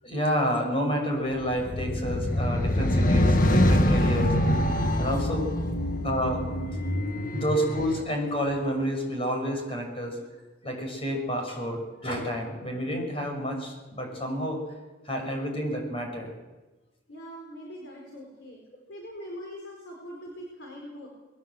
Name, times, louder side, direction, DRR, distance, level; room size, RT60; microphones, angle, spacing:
voice 1, 0.0-4.3 5.0-5.5 6.0-6.5 7.3-10.2 10.6-14.6 15.0-16.3, equal, 30° left, 2 dB, 6.6 m, -29 dB
sound 1, 1.5-8.0, left 1 dB, 45° left, 1.5 m, -24 dB
voice 2, 6.8-7.3 17.1-18.6 18.9-21.1, equal, 70° left, -1 dB, 4.7 m, -42 dB
21.5 x 19.0 x 7.9 m, 1.2 s
head